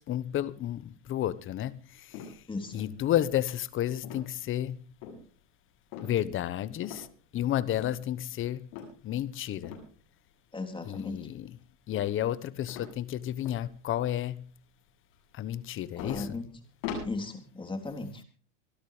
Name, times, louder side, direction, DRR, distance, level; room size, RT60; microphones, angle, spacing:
voice 1, 0.0-2.3 2.7-4.8 6.0-7.1 7.3-8.7 9.0-9.8 10.9-11.5 11.9-14.5 15.3-16.4, left 12 dB, 35° left, 1.2 m, -31 dB
sound 1, 2.1-2.6 3.1-3.6 4.0-4.4 5.0-5.3 5.9-6.3 6.8-7.4 7.8-8.0 8.7-9.0 9.6-9.9 10.9-11.4 11.9-12.4 12.7-13.7 14.1-14.2 15.6-15.7 16.0-17.0, left 6 dB, 65° left, 8.0 m, -42 dB
voice 2, 2.5-2.8 10.5-11.3 16.0-16.5 17.0-18.2, left 3 dB, 15° left, 3.5 m, -36 dB
25.5 x 12.0 x 3.3 m
hypercardioid pair, 110°, 37 cm